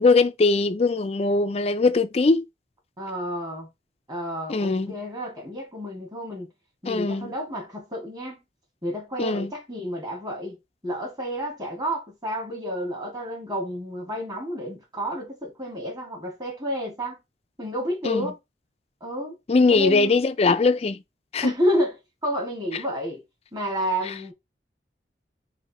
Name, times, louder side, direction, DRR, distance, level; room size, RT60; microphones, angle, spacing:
voice 1, 0.0-2.4 4.5-4.9 6.9-7.3 9.2-9.5 18.0-18.3 19.5-21.0 21.3-21.5, left 3 dB, 35° left, 0.4 m, -21 dB
voice 2, 3.0-3.7 4.1-6.5 6.8-8.4 8.8-10.6 10.8-17.2 17.6-18.4 19.0-19.4 19.7-20.2 21.4-21.9 22.2-23.2 23.5-24.3, equal, 20° right, 2.1 m, -30 dB
4.0 x 2.7 x 4.1 m
head